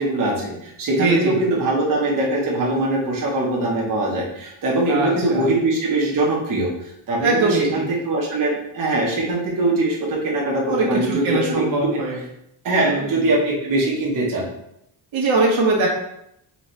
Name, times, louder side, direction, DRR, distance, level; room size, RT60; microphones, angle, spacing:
voice 1, 0.0-6.7 7.1-12.0 12.6-14.5, right 2 dB, 45° right, -4 dB, 1.1 m, -22 dB
voice 2, 1.0-1.4 4.9-5.5 7.2-7.8 10.7-12.2 12.8-13.2 15.1-15.9, right 3 dB, 85° right, -2 dB, 1.3 m, -21 dB
4.3 x 3.1 x 3.2 m, 0.77 s
wide cardioid pair, 160°, 46 cm